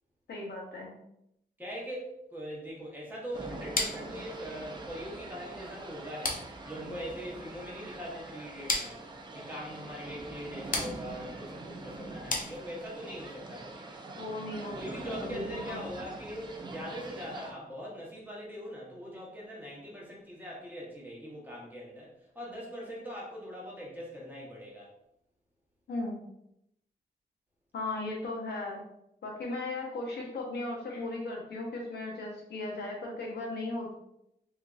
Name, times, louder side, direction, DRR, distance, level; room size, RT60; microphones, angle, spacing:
voice 1, 0.3-1.0 14.2-14.8 15.2-15.9 25.9-26.2 27.7-28.8 29.2-34.0, left 2 dB, 80° left, -1 dB, 0.8 m, -36 dB
voice 2, 1.6-9.0 9.3-14.0 14.7-24.9, equal, 10° right, -4 dB, 0.9 m, -42 dB
sound 1, 3.3-17.5, right 2 dB, 25° right, 0.4 m, -44 dB
sound 2, 3.7-13.1, left 3 dB, 55° left, 0.6 m, -38 dB
3.6 x 2.6 x 2.3 m, 0.78 s
wide cardioid pair, 130°, 17 cm